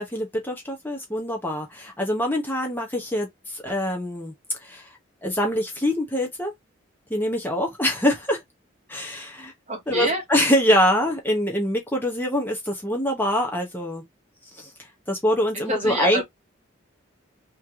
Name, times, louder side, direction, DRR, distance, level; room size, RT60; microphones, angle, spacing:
voice 1, 0.0-4.3 4.6-4.9 5.2-6.5 7.1-8.4 8.9-9.5 9.9-14.0 14.6-14.7 15.1-16.2, left 1 dB, 10° left, 0.9 m, -24 dB
voice 2, 9.7-10.2 15.7-16.2, right 1 dB, 35° right, 1.4 m, -26 dB
3.2 x 3.0 x 3.6 m
head